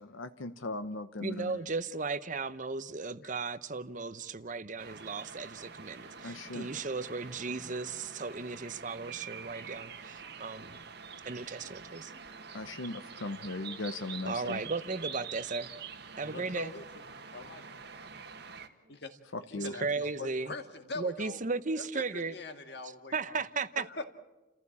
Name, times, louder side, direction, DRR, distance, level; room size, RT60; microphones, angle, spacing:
voice 1, 0.0-1.5 6.2-6.8 12.5-14.6 19.3-19.7, left 2 dB, 75° left, 0.9 m, -38 dB
voice 2, 1.2-10.8 11.2-12.1 14.2-15.7 16.2-16.7 19.5-20.5 20.9-22.4 23.1-23.8, right 4 dB, 40° right, 0.7 m, -36 dB
Atmo - Fechenheimer Ufer im Mai, 4.8-18.7, right 6 dB, 55° right, 1.5 m, -46 dB
voice 3, 16.2-16.8 17.3-17.8 18.9-19.1 19.5-21.4 21.8-23.4 24.0-24.1, left 3 dB, 55° left, 1.9 m, -43 dB
30.0 x 15.0 x 8.5 m
head